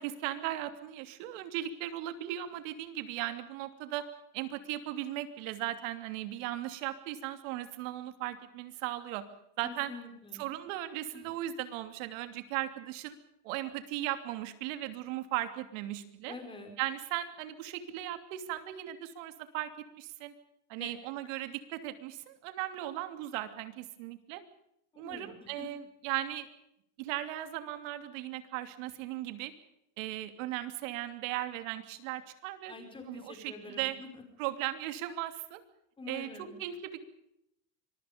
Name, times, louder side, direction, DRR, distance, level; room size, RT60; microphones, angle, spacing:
voice 1, 0.0-4.1 4.3-9.2 9.6-9.9 10.4-13.2 13.4-16.4 16.8-20.3 20.7-24.4 25.0-26.5 27.0-29.5 30.0-32.7 33.1-34.0 34.4-35.6 36.1-37.0, right 13 dB, 80° right, 10 dB, 3.0 m, -37 dB
voice 2, 9.6-10.5 11.1-11.3 16.3-16.7 20.8-20.9 24.9-25.4 32.7-34.2 36.0-36.6, left 3 dB, 15° left, 5 dB, 4.8 m, -46 dB
25.5 x 23.0 x 5.3 m, 0.78 s
cardioid pair, 175°, 38 cm